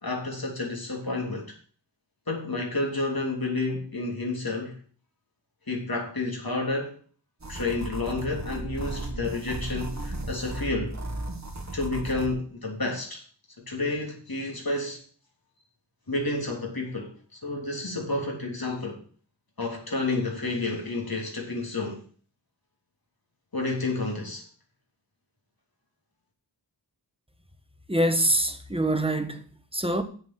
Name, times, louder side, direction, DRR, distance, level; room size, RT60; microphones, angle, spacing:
voice 1, 0.0-1.5 2.3-4.8 5.7-7.0 7.5-11.0 11.7-13.2 13.7-15.0 16.1-17.1 17.4-19.0 19.6-22.0 23.5-24.4, left 2 dB, 55° left, 3.4 m, -30 dB
sound 1, 7.4-12.3, right 1 dB, 40° right, 1.6 m, -35 dB
voice 2, 27.9-29.4 29.7-30.0, right 1 dB, 15° right, 1.3 m, -24 dB
7.7 x 7.2 x 7.7 m
wide cardioid pair, 60°, 43 cm